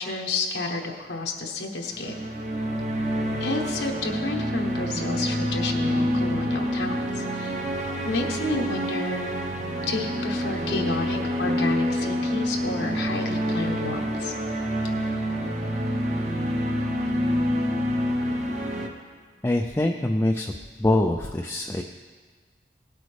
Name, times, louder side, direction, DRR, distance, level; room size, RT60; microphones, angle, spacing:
voice 1, 0.0-2.1 3.4-7.6 8.0-9.3 9.9-14.3, left 2 dB, 85° left, 1 dB, 1.1 m, -30 dB
sound 1, 1.9-18.9, equal, 40° right, 1.0 m, -27 dB
voice 2, 19.4-20.5 20.8-21.8, left 1 dB, 15° left, 2 dB, 0.3 m, -24 dB
17.5 x 8.1 x 3.3 m, 1.5 s
head